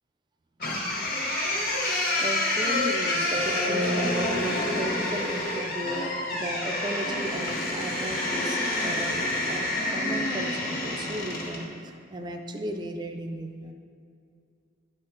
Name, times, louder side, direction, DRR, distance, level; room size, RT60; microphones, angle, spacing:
sound 1, 0.6-11.6, left 1 dB, 45° left, 1.3 m, -28 dB
voice 1, 2.2-9.2 9.5-13.7, right 1 dB, 20° right, 4 dB, 0.4 m, -36 dB
10.5 x 4.4 x 3.8 m, 2.4 s
head